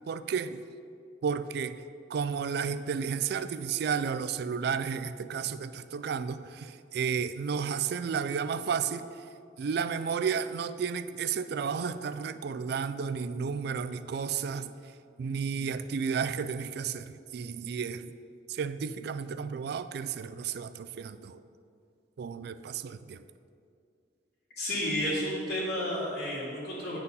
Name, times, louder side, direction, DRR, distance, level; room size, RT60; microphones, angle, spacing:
voice 1, 0.1-0.6 1.2-1.8 2.1-9.3 9.6-14.9 15.2-18.1 18.5-21.4 22.2-23.2, right 6 dB, 55° right, 12 dB, 0.3 m, -32 dB
voice 2, 24.6-27.0, left 1 dB, 55° left, -10 dB, 1.8 m, -31 dB
9.4 x 4.3 x 5.5 m, 2.4 s
head